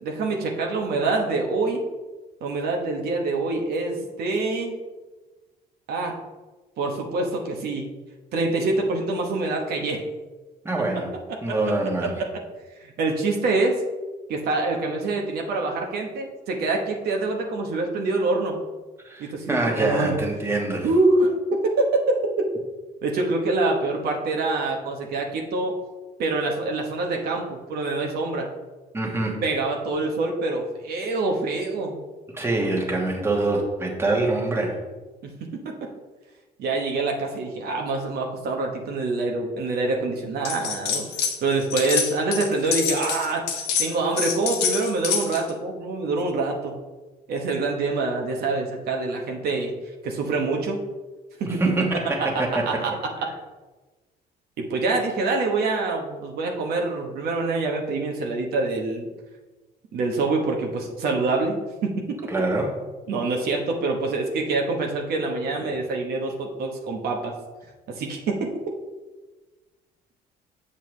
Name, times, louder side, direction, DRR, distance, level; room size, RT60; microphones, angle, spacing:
voice 1, 0.0-1.8 2.4-4.8 5.9-6.1 6.8-7.9 8.3-10.0 12.8-13.8 14.3-18.6 19.2-20.2 20.8-22.0 23.0-25.7 26.2-28.5 29.4-32.0 35.2-35.9 36.6-41.1 41.4-43.4 43.8-46.7 47.3-49.7 50.0-50.8 51.4-51.6 52.2-52.9 53.2-53.3 54.6-59.1 59.9-62.2 63.1-67.3 67.9-68.5, right 3 dB, 65° right, 1 dB, 1.0 m, -25 dB
voice 2, 10.6-11.1 11.4-12.1 19.0-20.9 28.9-29.4 32.3-34.8 51.4-52.8 62.3-62.7 65.6-65.7, right 2 dB, 15° right, -1 dB, 1.4 m, -25 dB
sound 1, 40.4-41.4 41.6-45.5, left 7 dB, 85° left, 1.1 m, -26 dB
7.5 x 5.5 x 3.2 m, 1.2 s
cardioid pair, 110°, 17 cm